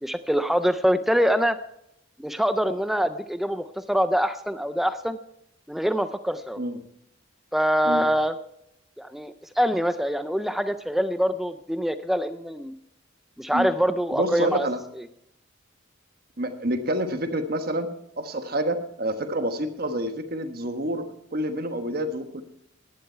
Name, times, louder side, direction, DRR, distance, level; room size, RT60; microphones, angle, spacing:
voice 1, 0.0-1.6 2.2-5.2 5.7-6.6 7.5-8.3 9.0-12.7 13.4-14.7, equal, ahead, 10 dB, 0.4 m, -24 dB
voice 2, 14.1-14.8 16.4-17.9 18.2-22.4, right 1 dB, 50° right, 7 dB, 1.3 m, -28 dB
16.0 x 11.0 x 4.5 m, 0.78 s
head